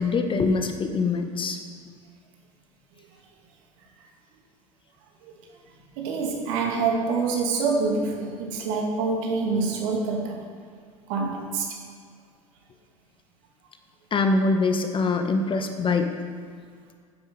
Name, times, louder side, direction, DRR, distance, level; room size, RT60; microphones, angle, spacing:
voice 1, 0.0-1.6 14.1-16.1, left 3 dB, 30° left, 6 dB, 1.5 m, -23 dB
voice 2, 6.0-10.5 11.1-11.8, right 4 dB, 60° right, 1 dB, 2.3 m, -26 dB
13.0 x 10.0 x 5.5 m, 2.1 s
figure-of-eight pair, 70°, 18 cm